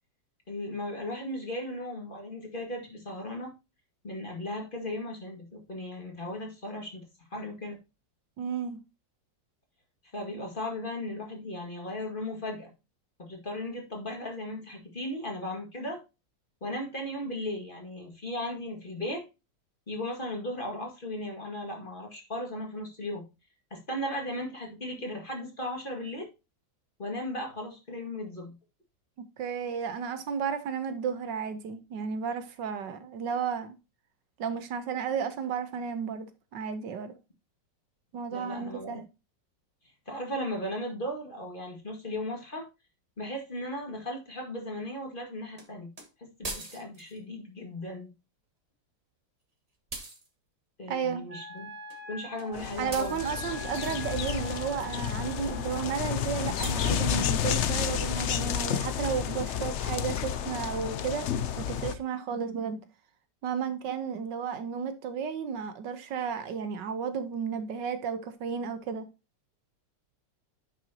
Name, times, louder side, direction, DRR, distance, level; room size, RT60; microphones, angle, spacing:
voice 1, 0.5-3.5 4.0-7.0 7.3-7.8 10.1-12.7 13.2-16.0 16.6-19.2 19.9-23.2 23.7-26.3 27.0-28.6 38.3-39.0 40.1-42.7 43.2-45.9 46.2-48.1 50.8-51.7 52.1-53.2, left 1 dB, 30° left, 2.1 m, -36 dB
voice 2, 8.4-8.8 29.4-33.8 34.4-37.1 38.1-39.0 50.9-51.2 52.8-61.3 61.6-62.8 63.4-69.1, right 6 dB, 75° right, 1.5 m, -33 dB
sound 1, 45.6-45.7 46.0-46.1 46.4-47.2 49.9-50.3 51.9-52.0 52.4-52.5 52.9-54.1 56.6-57.2, right 2 dB, 20° right, 1.4 m, -41 dB
Wind instrument woodwind instrument, 51.3-56.2, equal, 50° right, 1.8 m, -44 dB
sound 2, 52.5-61.9, left 9 dB, 80° left, 0.6 m, -31 dB
9.9 x 5.9 x 2.8 m
omnidirectional pair, 2.0 m